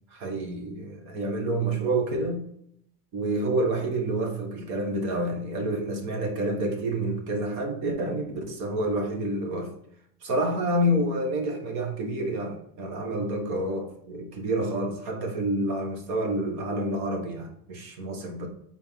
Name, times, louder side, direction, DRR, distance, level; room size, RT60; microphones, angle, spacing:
voice 1, 0.1-2.4 3.1-9.7 10.2-18.5, right 1 dB, 50° right, 1.4 m, -28 dB
6.9 x 4.4 x 3.6 m
cardioid pair, 180°, 36 cm